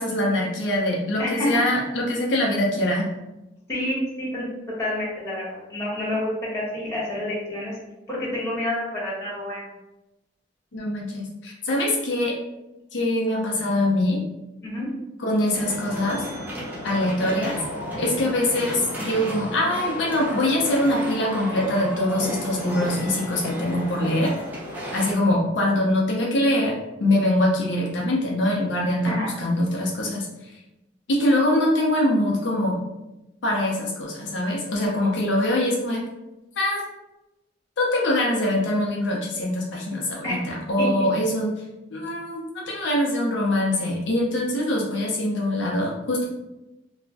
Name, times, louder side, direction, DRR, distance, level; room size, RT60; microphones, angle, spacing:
voice 1, 0.0-3.1 10.7-12.4 12.9-14.2 15.2-16.2 16.8-17.6 18.0-24.3 24.9-26.7 27.0-30.5 31.1-32.8 33.4-36.0 36.6-36.8 37.8-41.5 41.9-46.3, left 1 dB, 80° left, -2 dB, 0.5 m, -23 dB
voice 2, 1.2-1.5 3.7-4.5 4.8-7.8 8.1-9.7 14.6-14.9 29.0-29.3 40.2-40.4 40.8-40.9, left 1 dB, 15° left, -7 dB, 1.1 m, -28 dB
sound 1, 15.5-25.1, equal, 10° right, 0.5 m, -33 dB
2.4 x 2.1 x 3.3 m, 0.98 s
head